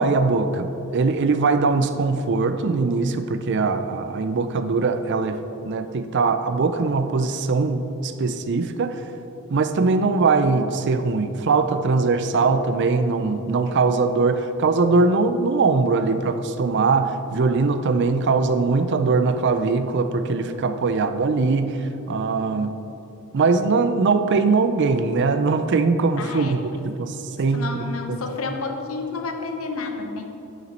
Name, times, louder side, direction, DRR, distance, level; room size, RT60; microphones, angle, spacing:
voice 1, 0.0-9.0 9.5-22.7 23.3-27.7 28.1-28.2, right 4 dB, 55° right, 10 dB, 0.5 m, -21 dB
voice 2, 26.2-26.6 27.5-30.3, left 3 dB, 70° left, 4 dB, 0.9 m, -30 dB
8.1 x 7.3 x 4.3 m, 3.0 s
head